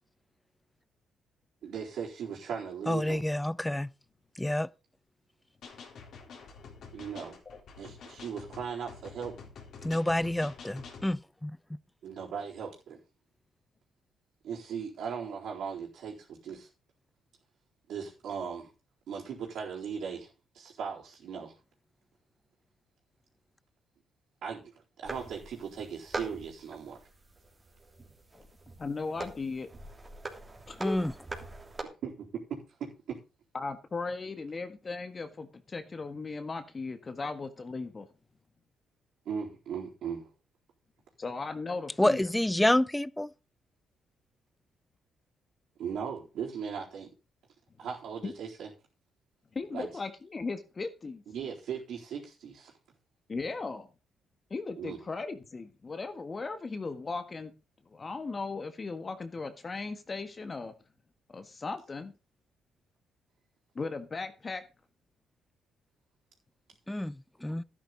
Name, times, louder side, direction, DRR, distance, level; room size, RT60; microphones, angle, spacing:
voice 1, 1.6-3.2 6.9-7.4 7.8-9.4 12.0-13.0 14.4-16.7 17.9-18.7 19.1-21.6 24.4-24.7 25.0-27.1 31.8-33.2 39.2-40.3 45.8-47.1 47.8-48.7 49.7-49.9 51.3-52.7 54.8-55.0, right 7 dB, 70° right, 4.2 m, -38 dB
voice 2, 2.9-3.9 4.4-4.7 9.8-11.5 30.8-31.1 42.0-43.3 66.9-67.1 67.4-67.6, left 1 dB, 10° left, 0.5 m, -28 dB
sound 1, 5.6-11.1, left 5 dB, 65° left, 3.6 m, -48 dB
sound 2, 25.0-31.8, right 2 dB, 25° right, 3.1 m, -43 dB
voice 3, 28.8-29.7 30.7-31.0 33.5-38.1 41.2-42.3 48.2-48.3 49.5-51.2 53.3-53.9 54.5-57.5 57.9-60.7 61.3-62.1 63.7-64.6, left 4 dB, 35° left, 1.5 m, -37 dB
12.0 x 10.5 x 4.0 m
cardioid pair, 90°, 0 cm